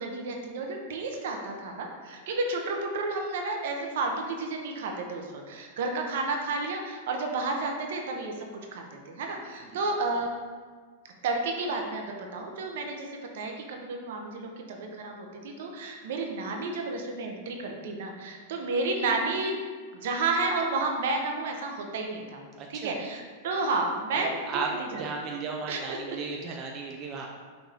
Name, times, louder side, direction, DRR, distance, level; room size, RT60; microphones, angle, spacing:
voice 1, 0.0-8.3 8.7-10.3 11.2-19.6 19.9-22.4 22.7-24.3 24.7-25.0 25.7-26.2 26.5-26.6, right 3 dB, 70° right, 2 dB, 0.8 m, -31 dB
voice 2, 22.6-23.0 24.1-27.3, right 4 dB, 35° right, 0 dB, 0.5 m, -34 dB
5.9 x 2.6 x 3.4 m, 1.5 s
hypercardioid pair, 130°, 0 cm